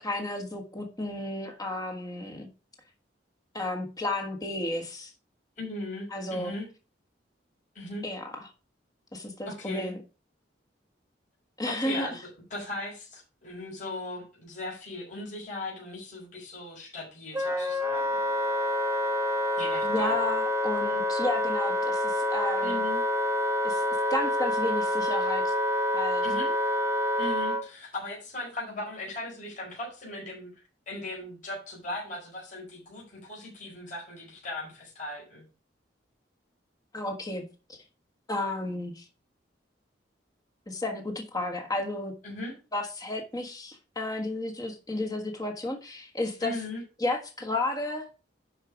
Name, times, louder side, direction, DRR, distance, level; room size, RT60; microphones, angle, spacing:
voice 1, 0.0-2.5 3.5-5.1 6.1-6.5 8.0-8.3 9.1-10.0 11.6-12.1 19.8-22.8 23.6-23.8 24.1-25.5 25.9-26.2 36.9-37.4 37.7-37.8 38.3-39.0 40.7-42.1 42.7-46.6 47.0-48.0, left 2 dB, 20° left, 3 dB, 1.5 m, -32 dB
voice 2, 5.6-6.7 7.7-8.1 9.4-9.9 11.7-18.2 19.5-20.1 22.6-23.0 26.2-26.5 27.2-35.4 42.2-42.6 46.4-46.8, left 2 dB, 45° left, -3 dB, 4.9 m, -38 dB
Wind instrument woodwind instrument, 17.3-27.6, left 1 dB, 15° right, 0.9 m, -27 dB
11.0 x 4.9 x 5.0 m, 0.33 s
head